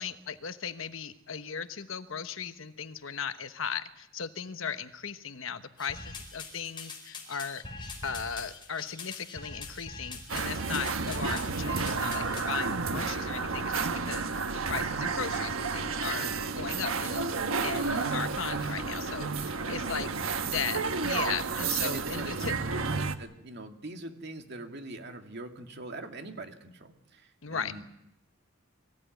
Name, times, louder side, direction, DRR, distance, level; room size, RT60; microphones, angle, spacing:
voice 1, 0.0-7.6 8.0-16.3 16.6-17.3 17.6-20.1 20.4-22.6 27.4-27.8, left 6 dB, 70° left, 11 dB, 1.1 m, -37 dB
sound 1, 5.8-12.7, left 3 dB, 25° left, 4.5 m, -43 dB
sound 2, 10.3-23.2, right 4 dB, 90° right, 1.3 m, -31 dB
voice 2, 12.7-13.1 19.7-20.1 21.8-27.8, right 2 dB, 55° right, 5 dB, 2.3 m, -43 dB
23.0 x 16.0 x 9.3 m, 0.82 s
head